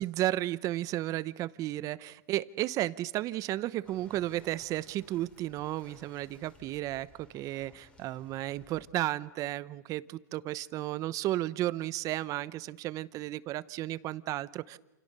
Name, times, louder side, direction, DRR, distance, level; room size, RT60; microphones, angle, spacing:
voice 1, 0.0-14.8, right 15 dB, 35° right, 17 dB, 0.9 m, -33 dB
sound 1, 3.8-8.9, left 2 dB, 10° left, 4.4 m, -59 dB
29.0 x 28.5 x 6.8 m, 0.98 s
supercardioid pair, 140°, 10 cm